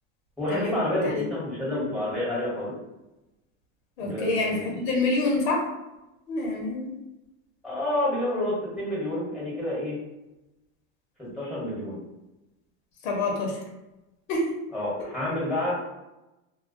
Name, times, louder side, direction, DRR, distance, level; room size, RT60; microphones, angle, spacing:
voice 1, 0.4-2.7 4.0-4.8 7.6-10.0 11.3-12.0 14.7-15.8, left 1 dB, ahead, -6 dB, 1.1 m, -29 dB
voice 2, 4.0-5.6 6.3-6.9 13.0-13.6 14.3-14.5, left 3 dB, 80° left, -1 dB, 0.9 m, -27 dB
2.2 x 2.2 x 2.5 m, 0.98 s
supercardioid pair, 115°, 41 cm